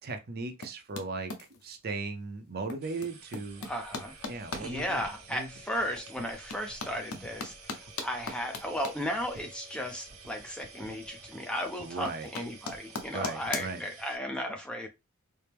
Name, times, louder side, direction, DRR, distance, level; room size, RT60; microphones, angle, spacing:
voice 1, 0.0-1.3 1.6-3.6 4.3-5.5 11.8-12.3 13.1-13.8, right 3 dB, 45° right, 0.5 m, -37 dB
sound 1, 0.6-1.8 2.6-4.6 5.2-5.3 5.9-10.5 10.8-11.4 11.6-13.7, left 3 dB, 80° left, 0.7 m, -39 dB
sound 2, 2.8-14.2, right 4 dB, 75° right, 1.1 m, -50 dB
sound 3, 3.5-13.6, left 5 dB, 50° left, 2.1 m, -59 dB
voice 2, 3.6-4.2 4.6-14.9, equal, 5° left, 0.4 m, -35 dB
4.4 x 2.0 x 3.4 m
head